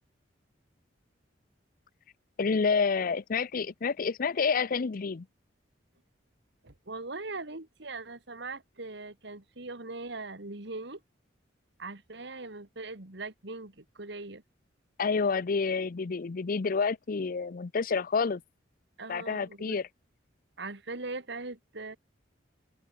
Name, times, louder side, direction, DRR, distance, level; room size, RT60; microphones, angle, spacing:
voice 1, 2.4-5.3 15.0-18.4 19.1-19.9, left 5 dB, 50° left, 0.5 m, -28 dB
voice 2, 6.6-11.0 11.8-14.4 19.0-19.8 20.6-22.0, right 3 dB, 65° right, 2.4 m, -40 dB
head